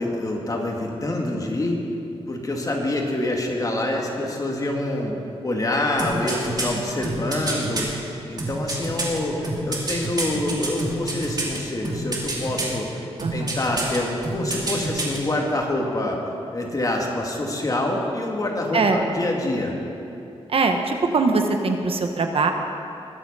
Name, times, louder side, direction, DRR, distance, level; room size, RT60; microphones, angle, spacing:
voice 1, 0.0-1.8 2.3-5.2 5.4-7.9 8.3-12.9 13.3-16.2 16.5-19.7, left 1 dB, 35° left, 0 dB, 2.2 m, -26 dB
sound 1, 6.0-7.8 8.4-11.6 11.8-12.8 13.2-14.0 14.2-15.2 15.5-15.6, right 2 dB, 40° right, 2.6 m, -27 dB
voice 2, 13.2-13.5 18.7-19.0 20.5-22.5, right 4 dB, 65° right, 5 dB, 1.1 m, -22 dB
21.0 x 7.8 x 5.5 m, 2.8 s
wide cardioid pair, 90°, 11 cm